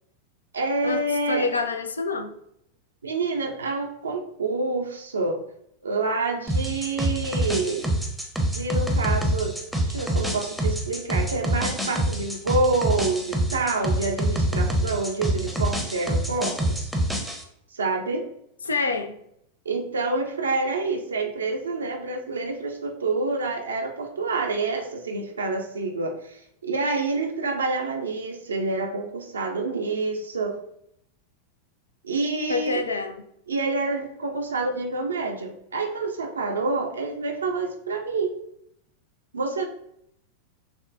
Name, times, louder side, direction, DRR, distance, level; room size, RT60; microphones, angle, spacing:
voice 1, 0.5-1.5 3.0-5.4 5.8-7.9 8.5-9.6 9.9-16.9 17.7-18.2 19.6-30.6 32.0-32.8 33.5-38.4 39.3-39.7, right 3 dB, 70° right, 2 dB, 0.5 m, -27 dB
voice 2, 1.3-2.3 18.6-19.2 32.5-33.2, left 3 dB, 75° left, 7 dB, 0.4 m, -26 dB
sound 1, 6.5-17.4, right 1 dB, ahead, 0.7 m, -26 dB
6.0 x 2.2 x 2.6 m, 0.73 s
figure-of-eight pair, 90°, 0 cm